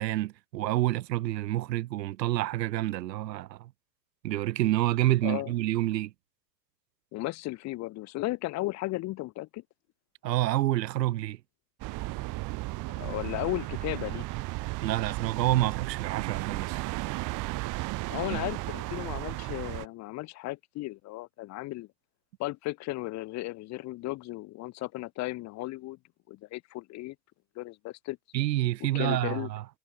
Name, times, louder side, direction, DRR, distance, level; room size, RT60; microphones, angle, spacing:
voice 1, 0.0-3.7 4.2-6.1 10.2-11.4 14.8-16.8 18.3-18.4 28.3-29.6, right 15 dB, 80° right, 1.3 m, -28 dB
voice 2, 5.2-5.5 7.1-9.6 12.9-14.2 18.1-21.9 22.4-26.0 26.3-27.1 27.6-28.2 28.9-29.5, left 18 dB, 35° left, 1.1 m, -35 dB
sound 1, 11.8-19.9, right 21 dB, 40° right, 1.6 m, -34 dB
hypercardioid pair, 125°, 49 cm